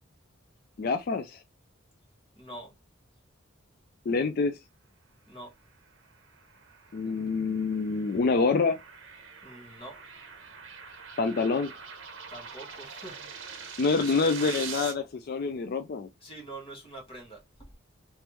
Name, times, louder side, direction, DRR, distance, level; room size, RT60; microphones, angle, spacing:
voice 1, 0.8-1.4 4.1-4.6 6.9-8.8 11.2-11.7 13.8-16.1, left 4 dB, 45° left, 0.3 m, -26 dB
voice 2, 2.4-2.7 5.3-5.5 9.4-10.0 12.3-13.3 14.0-14.2 16.2-17.7, right 1 dB, 25° left, 1.6 m, -44 dB
sound 1, 6.1-14.9, right 6 dB, 65° right, 0.9 m, -44 dB
3.3 x 3.2 x 3.0 m
head